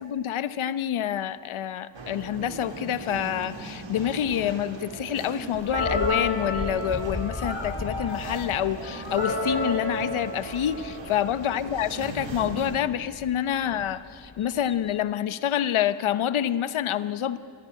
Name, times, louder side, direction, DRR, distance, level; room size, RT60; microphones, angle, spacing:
voice 1, 0.0-17.4, left 10 dB, 80° left, 13 dB, 1.0 m, -27 dB
sound 1, 1.9-12.8, right 3 dB, 70° right, 3.4 m, -39 dB
Bird, 5.5-15.1, left 3 dB, 25° left, 1.1 m, -39 dB
sound 2, 5.7-11.5, left 1 dB, 50° right, 6.8 m, -32 dB
27.5 x 14.5 x 9.9 m, 2.2 s
wide cardioid pair, 115°, 48 cm